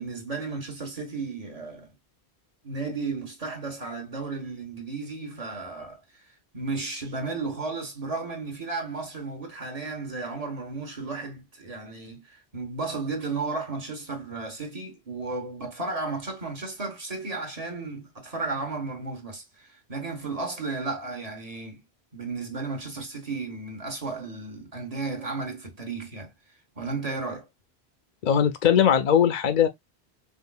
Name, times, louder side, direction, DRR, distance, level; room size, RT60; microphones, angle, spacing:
voice 1, 0.0-1.9 2.6-6.2 6.5-21.8 22.1-26.3 26.7-27.5, right 3 dB, 35° right, 1.2 m, -34 dB
voice 2, 28.2-29.7, left 8 dB, 55° left, 0.5 m, -20 dB
4.9 x 2.5 x 2.3 m
omnidirectional pair, 1.1 m